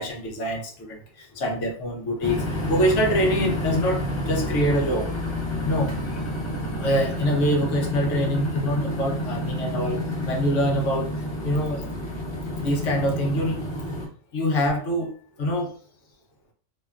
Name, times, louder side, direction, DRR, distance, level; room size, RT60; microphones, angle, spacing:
voice 1, 0.0-4.0 4.3-5.1 5.6-5.9 6.8-11.1 11.4-11.9 12.6-13.6 14.3-15.1 15.4-15.7, equal, 70° left, 2 dB, 0.9 m, -25 dB
sound 1, 2.2-14.1, left 1 dB, 30° left, 0.5 m, -29 dB
2.8 x 2.2 x 2.3 m, 0.43 s
omnidirectional pair, 1.3 m